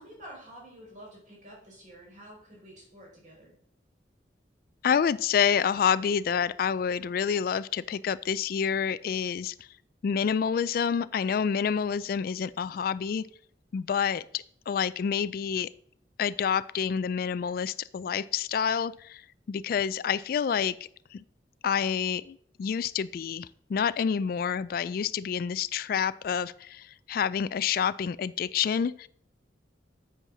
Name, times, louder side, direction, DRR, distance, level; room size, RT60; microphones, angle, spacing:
voice 1, 0.0-3.5, equal, 45° right, -3 dB, 4.7 m, -49 dB
voice 2, 4.8-9.7 10.0-13.3 13.7-15.7 16.2-19.2 19.5-20.8 21.1-21.2 21.6-29.1, left 7 dB, 55° left, 18 dB, 0.3 m, -28 dB
8.2 x 7.1 x 6.0 m, 0.65 s
head